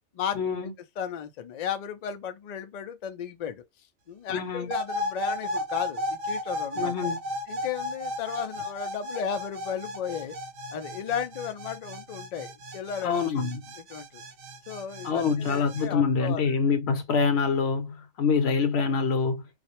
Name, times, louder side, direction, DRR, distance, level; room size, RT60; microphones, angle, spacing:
voice 1, 0.3-0.7 4.3-4.7 6.8-7.2 13.0-13.6 15.0-19.4, left 5 dB, 65° left, 0.8 m, -25 dB
voice 2, 1.0-3.6 4.1-6.9 7.5-10.3 10.7-13.4 13.9-14.2 14.7-16.6, left 8 dB, 85° left, 0.3 m, -34 dB
sound 1, 4.7-15.9, left 1 dB, 80° right, 0.9 m, -34 dB
2.4 x 2.0 x 2.7 m
omnidirectional pair, 1.3 m